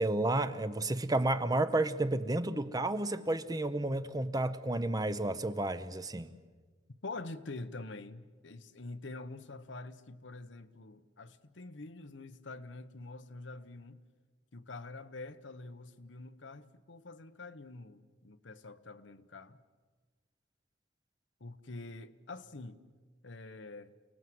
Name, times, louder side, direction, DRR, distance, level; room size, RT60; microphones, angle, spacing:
voice 1, 0.0-6.3, right 2 dB, 20° right, 0.8 m, -31 dB
voice 2, 7.0-14.1 14.5-19.6 21.4-22.8 23.2-23.9, left 2 dB, 85° left, 1.1 m, -46 dB
29.0 x 19.0 x 7.8 m
head